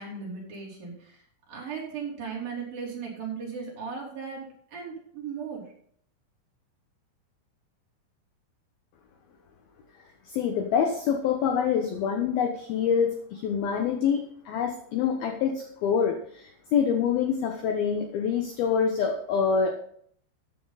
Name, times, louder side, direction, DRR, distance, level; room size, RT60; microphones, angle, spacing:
voice 1, 0.0-5.7, right 5 dB, 50° right, -3 dB, 4.7 m, -37 dB
voice 2, 10.3-14.2 14.5-19.8, left 7 dB, 75° left, 4 dB, 2.3 m, -26 dB
13.5 x 9.6 x 4.1 m, 0.63 s
omnidirectional pair, 5.6 m